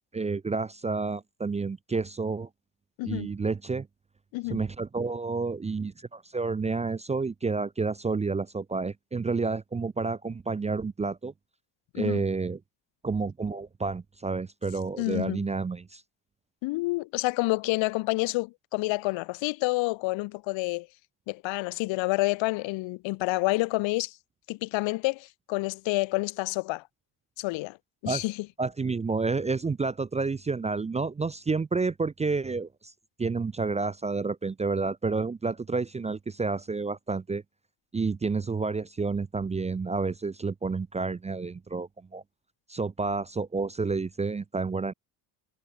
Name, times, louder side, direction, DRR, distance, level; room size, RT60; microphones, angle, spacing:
voice 1, 0.1-2.5 3.0-3.9 4.5-11.3 12.0-12.6 13.0-16.0 28.1-28.2 28.6-32.7 33.2-37.4 37.9-42.2 42.7-44.9, right 4 dB, 15° right, 0.5 m, -30 dB
voice 2, 3.0-3.3 4.3-4.6 11.9-12.2 15.0-15.5 16.6-20.9 21.3-24.2 24.5-26.8 27.4-27.8 28.0-28.5, left 22 dB, 75° left, 1.1 m, -28 dB
cardioid pair, 95°, 45 cm